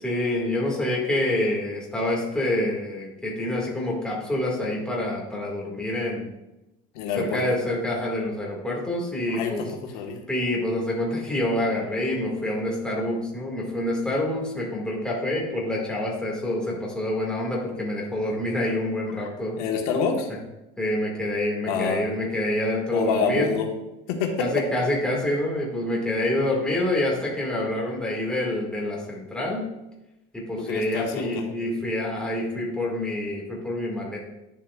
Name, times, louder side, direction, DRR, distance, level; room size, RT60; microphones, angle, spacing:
voice 1, 0.0-6.3 7.2-9.6 10.3-19.6 20.8-23.6 24.4-29.7 30.3-34.2, left 1 dB, 5° left, -3 dB, 2.0 m, -27 dB
voice 2, 6.9-7.4 9.3-10.2 19.6-20.3 21.6-22.0 22.9-23.7 24.1-24.5 30.6-31.3, left 5 dB, 80° left, 2 dB, 1.4 m, -26 dB
11.0 x 7.3 x 2.4 m, 0.95 s
cardioid pair, 145°, 19 cm